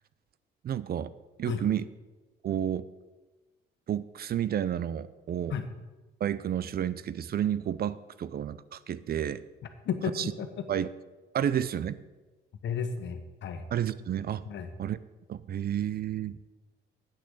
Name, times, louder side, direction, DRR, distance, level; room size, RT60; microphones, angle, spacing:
voice 1, 0.6-1.1 1.4-1.8 2.4-2.9 3.9-5.5 6.2-9.4 10.2-10.3 10.7-10.9 11.3-12.0 13.7-14.4 14.8-15.0 15.3-16.4, right 10 dB, 50° right, 17 dB, 0.5 m, -30 dB
voice 2, 9.8-10.7 12.6-13.7 14.4-14.7, left 7 dB, 65° left, 8 dB, 1.2 m, -33 dB
8.9 x 6.2 x 8.4 m, 1.2 s
cardioid pair, 90°, 20 cm